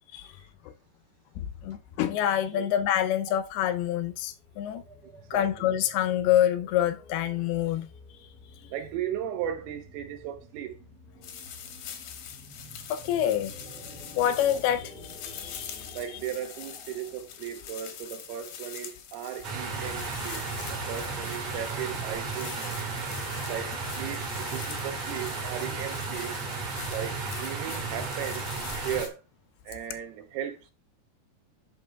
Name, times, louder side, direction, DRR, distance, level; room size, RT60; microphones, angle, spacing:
voice 1, 1.4-4.8 5.3-7.9 8.6-8.7 12.9-13.5 14.1-14.9 15.2-16.0, left 11 dB, 85° left, 2.6 m, -27 dB
sound 1, 4.0-18.1, equal, ahead, 0.4 m, -50 dB
voice 2, 5.3-5.7 8.7-10.8 15.9-22.8 23.4-26.3 26.9-28.5 28.8-29.2 29.7-30.7, right 10 dB, 85° right, 2.9 m, -36 dB
sound 2, 11.2-29.1, left 8 dB, 70° left, 2.0 m, -44 dB
sound 3, 19.4-29.1, right 4 dB, 45° right, 2.4 m, -34 dB
12.0 x 4.5 x 2.2 m
omnidirectional pair, 4.5 m